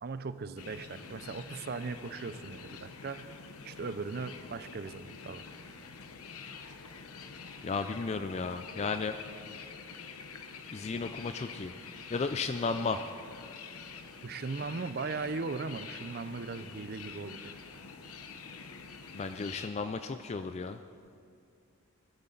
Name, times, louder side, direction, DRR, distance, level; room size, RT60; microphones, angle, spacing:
voice 1, 0.0-3.3 3.6-5.4 14.2-17.6, right 4 dB, 45° right, 13 dB, 0.5 m, -38 dB
sound 1, 0.6-19.7, left 5 dB, 75° left, 0.9 m, -47 dB
voice 2, 7.6-9.1 10.7-11.7 12.1-13.0 19.1-20.8, left 4 dB, 30° left, 9 dB, 0.3 m, -34 dB
21.0 x 12.5 x 3.9 m, 2.4 s
head